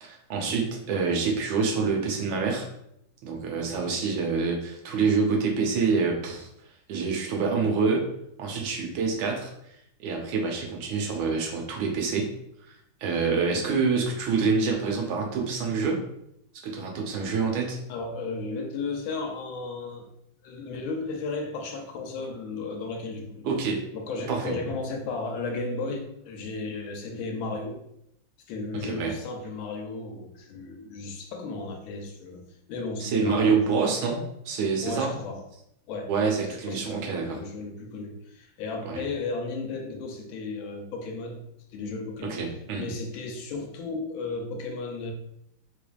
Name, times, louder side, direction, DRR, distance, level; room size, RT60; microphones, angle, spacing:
voice 1, 0.0-2.7 3.2-6.5 6.9-8.1 8.4-9.5 10.0-12.3 12.7-12.8 13.0-16.0 16.6-17.8 23.4-23.8 24.3-24.6 28.8-29.1 33.0-35.1 36.1-37.4 38.8-39.0 42.2-42.9, right 5 dB, 85° right, 0 dB, 1.5 m, -26 dB
voice 2, 17.9-20.1 20.4-23.5 23.9-27.8 28.5-32.4 32.7-33.6 34.8-35.4 35.9-36.1 36.6-42.5 42.7-45.1, left 3 dB, 90° left, 3 dB, 1.4 m, -34 dB
3.5 x 3.3 x 2.3 m, 0.78 s
omnidirectional pair, 2.2 m